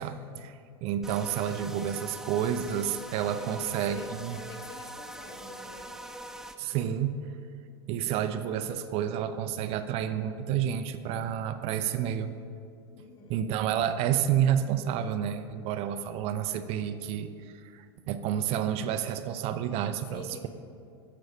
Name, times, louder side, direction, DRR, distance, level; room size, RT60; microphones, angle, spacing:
voice 1, 0.0-4.4 6.6-7.2 7.9-12.3 13.3-20.5, right 9 dB, 50° right, 10 dB, 0.6 m, -30 dB
sound 1, 1.0-6.6, right 1 dB, 5° right, 0.6 m, -43 dB
voice 2, 3.4-5.9 12.9-13.4 20.1-20.5, left 2 dB, 35° left, 5 dB, 1.2 m, -46 dB
11.0 x 6.9 x 4.8 m, 2.4 s
hypercardioid pair, 100°, 14 cm